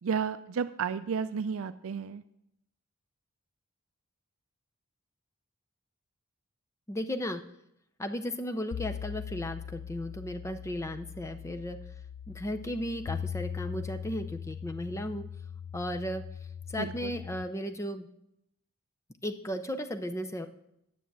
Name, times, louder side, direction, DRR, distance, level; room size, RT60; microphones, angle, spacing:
voice 1, 0.0-2.2 16.8-17.2, right 6 dB, 65° right, 12 dB, 0.4 m, -32 dB
voice 2, 6.9-7.4 8.0-11.8 12.3-15.2 15.7-16.2 16.7-18.1 19.2-20.5, equal, 15° left, 7 dB, 0.5 m, -35 dB
sound 1, 8.7-17.4, left 8 dB, 65° left, 0.4 m, -40 dB
9.5 x 6.9 x 7.5 m, 0.78 s
head